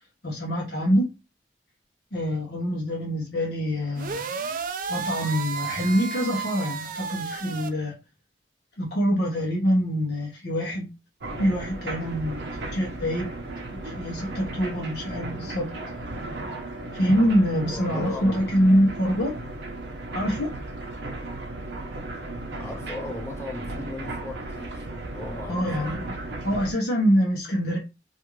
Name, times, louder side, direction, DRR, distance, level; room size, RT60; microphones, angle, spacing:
voice 1, 0.2-1.1 2.1-4.2 4.9-7.9 8.8-10.9 11.4-13.3 13.7-15.7 16.9-19.3 20.1-20.5 25.5-26.2 26.4-27.8, equal, 70° left, 0.8 m, -25 dB
sound 1, 4.0-7.7, right 6 dB, 50° right, 0.4 m, -32 dB
sound 2, 11.2-26.7, right 2 dB, 85° right, 0.6 m, -35 dB
voice 2, 17.7-18.5 22.6-26.0, left 2 dB, 15° left, 0.6 m, -38 dB
2.5 x 2.4 x 3.0 m
head